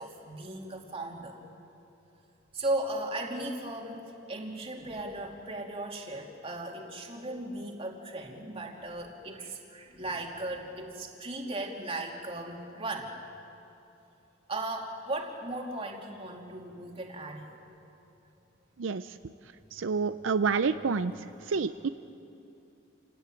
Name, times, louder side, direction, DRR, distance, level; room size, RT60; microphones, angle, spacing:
voice 1, 0.0-1.4 2.5-13.1 14.5-17.7 21.8-21.9, right 2 dB, 30° right, 1 dB, 2.7 m, -37 dB
voice 2, 19.7-21.1 21.5-21.9, right 5 dB, 75° right, 11 dB, 0.5 m, -28 dB
28.5 x 17.5 x 9.0 m, 2.9 s
head